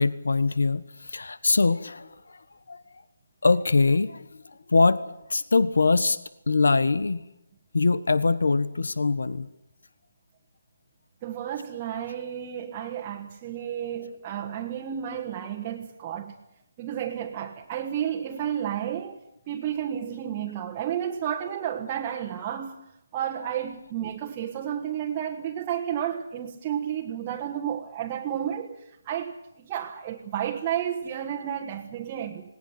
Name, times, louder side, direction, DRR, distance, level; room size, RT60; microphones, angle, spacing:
voice 1, 0.0-2.4 2.7-2.8 3.4-6.2 6.5-7.2 7.7-9.5, left 3 dB, 80° left, 1.4 m, -23 dB
voice 2, 11.2-16.3 16.8-22.9 23.1-32.5, right 10 dB, 20° right, 1.5 m, -32 dB
19.5 x 19.0 x 9.7 m
hypercardioid pair, 165°, 0 cm